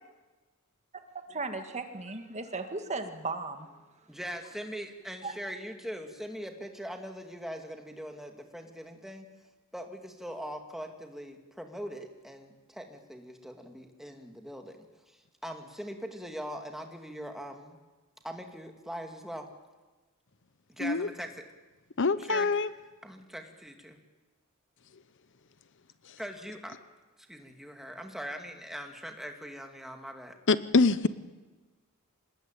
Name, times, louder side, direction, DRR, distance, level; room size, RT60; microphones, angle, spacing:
voice 1, 1.3-3.7 5.2-5.3, right 3 dB, 30° right, 7 dB, 2.0 m, -36 dB
voice 2, 4.1-9.3 9.7-17.8 18.2-19.5 20.7-21.4 22.2-22.6 23.0-24.0 26.2-26.8 27.3-30.4, equal, ahead, 4 dB, 2.6 m, -41 dB
voice 3, 22.0-22.7 30.5-31.1, left 3 dB, 60° left, 15 dB, 0.9 m, -24 dB
26.5 x 20.5 x 9.1 m, 1.2 s
head